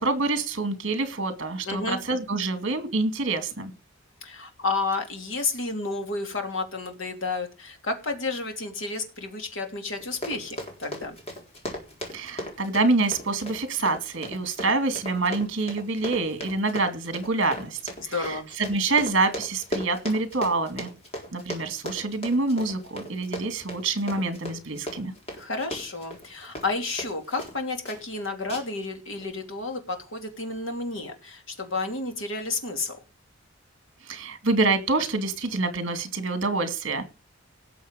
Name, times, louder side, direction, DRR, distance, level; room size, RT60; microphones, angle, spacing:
voice 1, 0.0-3.7 12.1-17.8 18.1-20.9 21.3-25.1 34.0-37.0, right 3 dB, 55° right, 9 dB, 2.5 m, -26 dB
voice 2, 1.7-2.0 4.2-11.2 18.0-18.5 25.3-33.0, left 3 dB, 65° left, 4 dB, 2.9 m, -31 dB
Run, 10.0-27.6 27.8-28.2 28.5-28.9 29.2-29.3, equal, 30° left, 3.9 m, -37 dB
18.0 x 7.1 x 5.3 m, 0.31 s
head